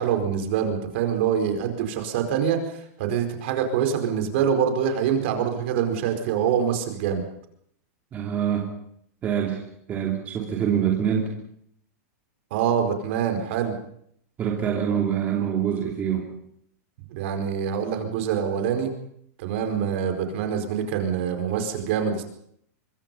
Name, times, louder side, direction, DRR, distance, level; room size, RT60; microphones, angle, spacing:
voice 1, 0.0-2.6 3.0-7.2 12.5-13.7 17.1-18.9 19.4-22.2, right 8 dB, 45° right, 6 dB, 4.7 m, -25 dB
voice 2, 8.1-8.7 9.2-9.6 9.9-11.3 14.4-16.3, right 8 dB, 20° right, 0 dB, 2.9 m, -25 dB
25.0 x 23.5 x 5.5 m, 0.69 s
supercardioid pair, 170°, 9 cm